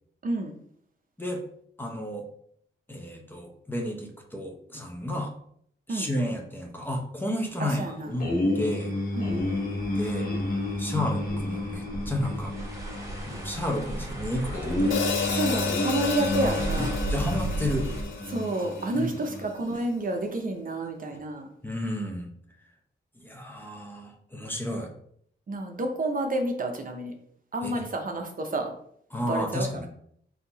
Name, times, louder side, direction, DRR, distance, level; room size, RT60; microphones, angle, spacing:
voice 1, 0.2-0.5 5.9-6.1 7.6-8.1 9.2-9.5 15.3-17.0 18.3-21.5 25.5-27.1 27.5-28.7 29.3-29.6, right 2 dB, 45° right, 3 dB, 0.7 m, -29 dB
voice 2, 1.8-2.3 2.9-5.3 5.9-8.9 9.9-10.3 10.8-12.5 13.3-15.1 16.8-17.9 18.9-19.2 19.7-19.8 21.6-22.3 23.2-24.9 27.6-27.8 29.1-29.9, left 1 dB, 10° left, 1 dB, 0.8 m, -32 dB
sound 1, 8.2-19.4, left 1 dB, 45° left, 1.1 m, -31 dB
sound 2, 9.2-18.0, right 2 dB, 15° right, 1.2 m, -36 dB
Hi-hat, 14.9-19.2, left 6 dB, 85° left, 0.6 m, -32 dB
4.3 x 2.8 x 4.0 m, 0.65 s
wide cardioid pair, 100°, 20 cm